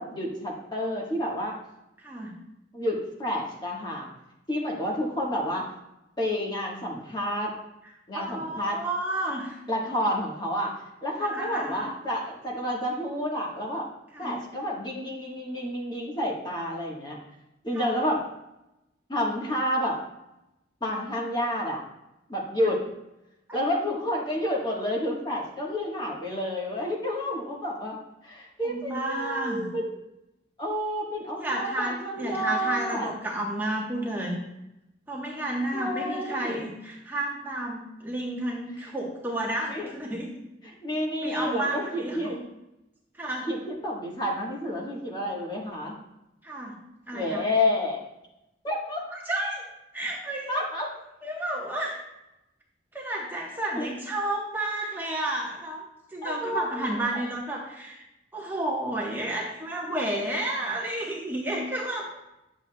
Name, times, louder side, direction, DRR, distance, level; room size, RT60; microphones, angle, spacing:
voice 1, 0.0-1.6 2.7-4.1 4.5-5.7 6.2-7.5 8.1-8.8 9.7-10.7 11.0-13.9 14.2-17.2 17.6-18.2 19.1-20.0 20.8-21.8 22.3-22.8 23.5-28.0 28.2-30.0 30.6-33.1 35.7-36.7 39.7-39.9 40.6-42.4 43.5-45.9 47.1-48.0 48.6-49.0 50.5-50.9 53.7-53.9 56.2-57.0, left 1 dB, 25° left, -2 dB, 1.3 m, -29 dB
voice 2, 2.0-2.3 8.1-9.6 11.2-11.9 14.1-14.4 17.7-17.9 28.6-29.7 31.4-34.4 35.1-40.3 41.2-42.4 43.1-43.5 46.4-46.8 47.1-47.5 49.1-49.7 49.9-50.6 51.2-52.0 52.9-55.8 56.1-58.0 58.3-62.1, right 1 dB, 10° right, -3 dB, 1.1 m, -31 dB
9.9 x 6.9 x 2.2 m, 0.91 s
head